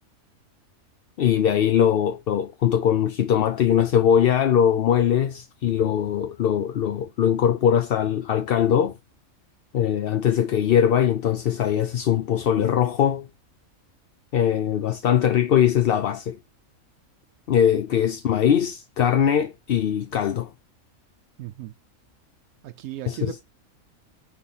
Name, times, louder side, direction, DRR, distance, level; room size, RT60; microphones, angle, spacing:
voice 1, 1.2-8.9 9.7-13.3 14.3-16.4 17.5-20.5 23.1-23.3, left 9 dB, 55° left, 0.7 m, -21 dB
voice 2, 21.4-21.7 22.6-23.4, right 13 dB, 80° right, 1.1 m, -36 dB
9.6 x 3.8 x 5.6 m
omnidirectional pair, 1.5 m